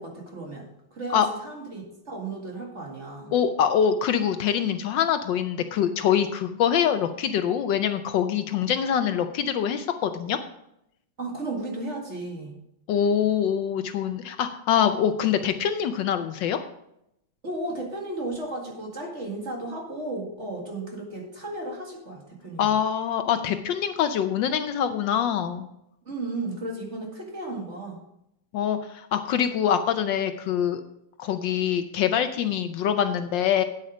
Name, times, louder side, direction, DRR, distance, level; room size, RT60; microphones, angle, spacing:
voice 1, 0.0-3.3 11.2-12.6 17.4-22.7 26.1-28.0, right 2 dB, 35° right, 0 dB, 2.2 m, -34 dB
voice 2, 3.3-10.4 12.9-16.6 22.6-25.7 28.5-30.8 31.2-33.6, left 8 dB, 75° left, 9 dB, 1.2 m, -24 dB
8.6 x 8.5 x 5.0 m, 0.79 s
omnidirectional pair, 2.2 m